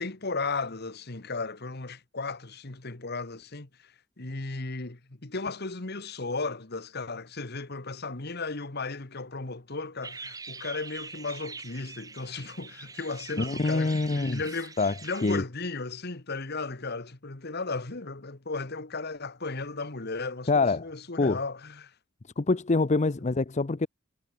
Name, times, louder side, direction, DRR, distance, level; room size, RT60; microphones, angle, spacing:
voice 1, 0.0-21.9, left 3 dB, 55° left, 1.6 m, -35 dB
sound 1, 10.0-15.4, right 4 dB, 20° right, 1.3 m, -43 dB
voice 2, 13.4-14.4 14.8-14.9 15.2-15.4 20.5-20.9 21.2-21.4 22.4-23.9, left 3 dB, 35° left, 0.6 m, -25 dB
head